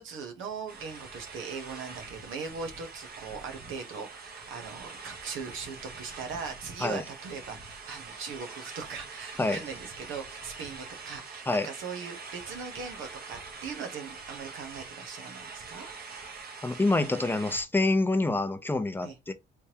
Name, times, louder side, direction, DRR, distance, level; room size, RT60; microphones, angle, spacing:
voice 1, 0.0-15.9 19.0-19.2, right 5 dB, 85° right, 1.0 m, -40 dB
sound 1, 0.7-17.6, right 4 dB, 50° right, 1.1 m, -44 dB
voice 2, 16.6-19.3, left 2 dB, 10° left, 0.6 m, -26 dB
3.5 x 3.1 x 2.9 m
cardioid pair, 90°, 20 cm